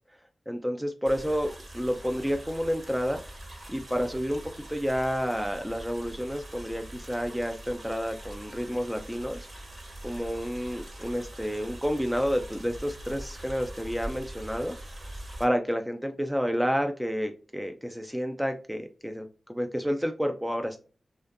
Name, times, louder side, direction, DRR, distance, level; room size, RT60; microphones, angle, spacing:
voice 1, 0.5-3.2 3.7-4.4 4.7-9.5 10.0-14.8 15.4-20.8, equal, 5° right, 0.3 m, -30 dB
sound 1, 1.1-15.5, right 1 dB, 50° right, 0.9 m, -43 dB
2.5 x 2.2 x 2.4 m
cardioid pair, 45°, 0 cm